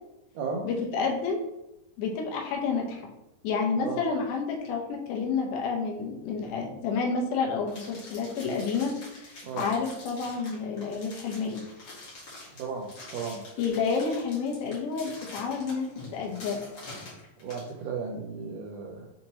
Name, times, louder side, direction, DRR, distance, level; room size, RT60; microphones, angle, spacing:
voice 1, 0.6-1.4 2.0-3.0 3.4-11.6 13.6-15.9 16.1-16.6, left 5 dB, 80° left, 0 dB, 2.5 m, -29 dB
sound 1, 7.7-17.7, left 2 dB, 55° left, 1.2 m, -46 dB
voice 2, 12.5-13.4 17.4-19.1, right 5 dB, 90° right, -1 dB, 1.8 m, -35 dB
6.4 x 2.9 x 2.8 m, 0.92 s
omnidirectional pair, 4.5 m